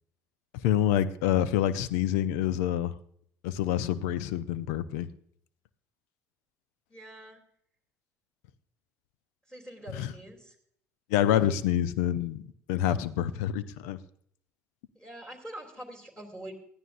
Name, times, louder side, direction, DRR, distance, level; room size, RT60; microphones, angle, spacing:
voice 1, 0.5-2.9 3.4-5.1 9.9-10.1 11.1-12.4 12.7-14.0, left 11 dB, 70° left, 16 dB, 0.6 m, -27 dB
voice 2, 6.9-7.4 9.5-10.5 14.9-16.5, right 1 dB, 10° left, 1 dB, 3.0 m, -44 dB
20.0 x 13.5 x 2.6 m, 0.66 s
figure-of-eight pair, 55°, 9 cm